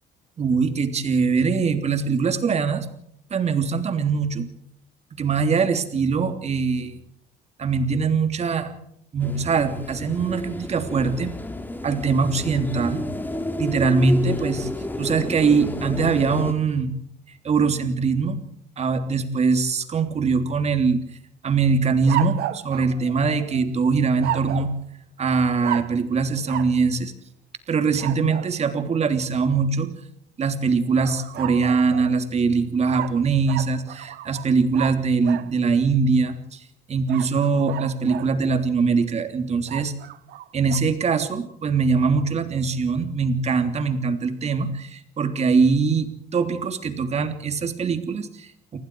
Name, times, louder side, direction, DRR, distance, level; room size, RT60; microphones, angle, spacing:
voice 1, 0.4-2.8 3.3-4.5 5.1-7.0 7.6-8.7 9.1-11.3 11.8-13.0 13.6-14.7 15.0-16.9 17.4-18.4 18.8-21.0 21.4-24.7 25.2-27.1 27.7-29.9 30.4-36.6 36.9-39.9 40.5-48.8, right 5 dB, 40° right, 7 dB, 3.2 m, -22 dB
sound 1, 9.2-16.5, left 1 dB, 10° left, 2.7 m, -31 dB
sound 2, 22.1-23.6 24.2-24.8 25.6-26.0 26.5-26.8 28.0-28.5 31.0-32.2 32.9-35.5 37.1-38.3 39.7-40.8, right 14 dB, 75° right, 1.4 m, -33 dB
30.0 x 19.5 x 4.8 m, 0.70 s
cardioid pair, 110°, 17 cm